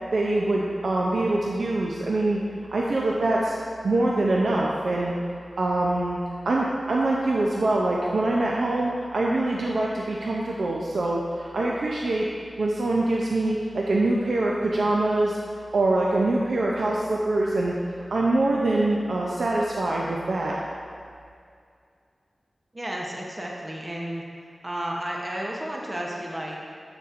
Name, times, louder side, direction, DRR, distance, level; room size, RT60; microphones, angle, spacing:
voice 1, 0.1-2.4 2.7-3.5 3.8-5.1 5.6-6.2 6.5-12.3 12.6-15.4 15.7-17.7 18.1-20.6, right 2 dB, 75° right, -3 dB, 0.5 m, -24 dB
voice 2, 22.7-24.2 24.6-26.6, right 1 dB, 20° right, -2 dB, 0.8 m, -32 dB
7.8 x 6.8 x 2.5 m, 2.3 s
wide cardioid pair, 105°, 0 cm